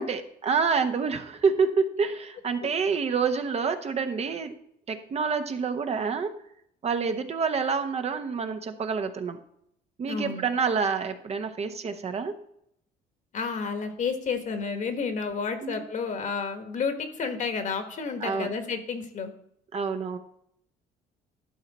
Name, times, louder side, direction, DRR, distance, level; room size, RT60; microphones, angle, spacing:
voice 1, 0.0-4.5 4.9-6.3 6.8-9.4 10.0-12.3 15.6-15.8 18.2-18.5 19.7-20.2, right 5 dB, 40° right, 8 dB, 0.8 m, -27 dB
voice 2, 10.1-10.5 13.3-19.3, left 5 dB, 45° left, 7 dB, 1.4 m, -31 dB
12.0 x 5.7 x 4.2 m, 0.72 s
cardioid pair, 110°, 17 cm